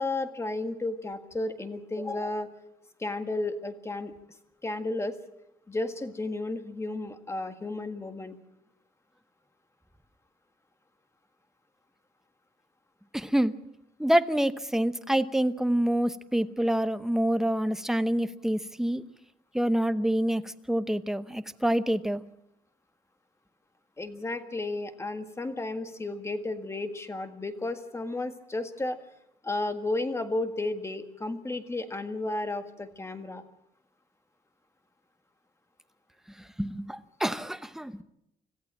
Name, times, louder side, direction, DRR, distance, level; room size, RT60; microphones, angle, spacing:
voice 1, 0.0-2.5 3.0-4.1 4.6-5.2 5.7-8.4 24.0-29.0 29.4-33.4, left 2 dB, 15° left, 8 dB, 1.7 m, -33 dB
voice 2, 13.1-13.6 14.0-19.0 19.5-22.2 36.4-38.0, right 1 dB, 5° right, 11 dB, 0.8 m, -27 dB
26.0 x 15.0 x 7.5 m, 0.84 s
cardioid pair, 125°, 15 cm